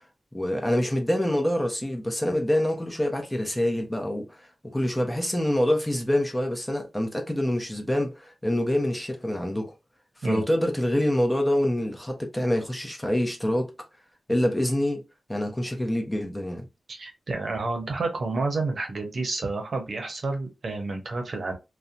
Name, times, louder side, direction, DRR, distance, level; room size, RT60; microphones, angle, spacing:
voice 1, 0.3-4.5 4.7-9.7 10.2-13.7 14.3-15.0 15.3-16.6, left 1 dB, 15° left, 0.8 m, -26 dB
voice 2, 16.9-21.5, right 3 dB, 60° right, 0.7 m, -30 dB
2.6 x 2.2 x 2.5 m
cardioid pair, 60°, 0 cm